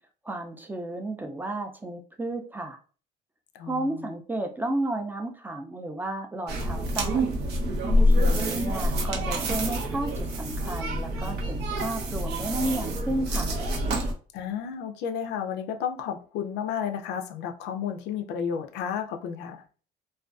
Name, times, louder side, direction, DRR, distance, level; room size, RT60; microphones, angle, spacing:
voice 1, 0.2-2.8 3.6-7.2 8.1-13.5, right 1 dB, 10° right, 0.3 m, -32 dB
voice 2, 3.5-4.2 14.3-19.6, left 8 dB, 85° left, 0.4 m, -32 dB
sound 1, 6.5-14.1, equal, 90° right, 0.6 m, -26 dB
2.3 x 2.2 x 2.3 m
cardioid pair, 110°, 17 cm